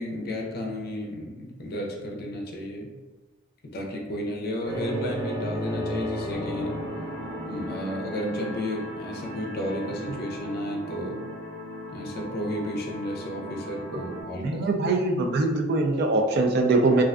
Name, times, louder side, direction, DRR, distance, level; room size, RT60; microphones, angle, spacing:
voice 1, 0.0-2.9 3.6-6.8 7.4-11.3 11.9-14.7, equal, 55° left, 0 dB, 0.5 m, -32 dB
sound 1, 4.6-14.2, equal, 20° left, 1.0 m, -35 dB
voice 2, 14.4-17.0, right 2 dB, 60° right, 3 dB, 0.3 m, -22 dB
2.4 x 2.2 x 2.4 m, 1.2 s
head